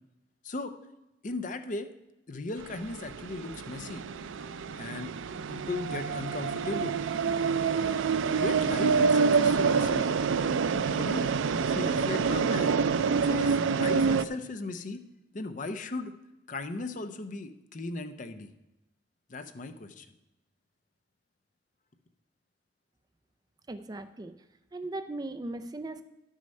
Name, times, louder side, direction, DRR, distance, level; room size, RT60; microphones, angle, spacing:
voice 1, 1.2-1.9 2.3-4.1 4.8-5.2 5.5-7.0 8.4-10.1 10.9-11.3 11.6-12.8 13.2-15.0 15.3-16.1 16.5-18.5 19.3-20.1, left 2 dB, 45° left, 9 dB, 0.6 m, -37 dB
sound 1, 2.6-14.3, right 5 dB, 85° right, 0.4 m, -27 dB
voice 2, 23.7-24.3 24.7-26.0, right 2 dB, 20° right, 9 dB, 0.4 m, -38 dB
11.0 x 6.3 x 5.4 m, 0.95 s
head